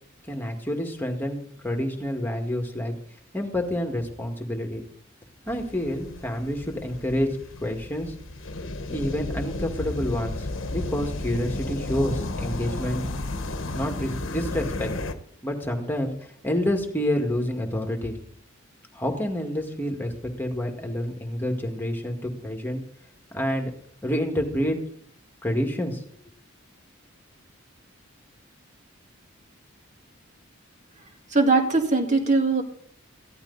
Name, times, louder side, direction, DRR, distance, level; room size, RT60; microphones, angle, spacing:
voice 1, 0.3-2.9 3.3-4.8 5.5-7.3 7.6-8.1 8.9-13.0 13.7-14.9 15.4-18.1 18.9-20.1 20.4-22.8 23.3-23.7 24.0-24.8 25.4-26.0, equal, 10° left, 3 dB, 1.9 m, -28 dB
sound 1, 5.5-15.1, left 2 dB, 80° left, 1.2 m, -33 dB
voice 2, 31.3-32.6, right 3 dB, 35° right, 4 dB, 2.0 m, -20 dB
15.0 x 12.0 x 4.1 m, 0.64 s
head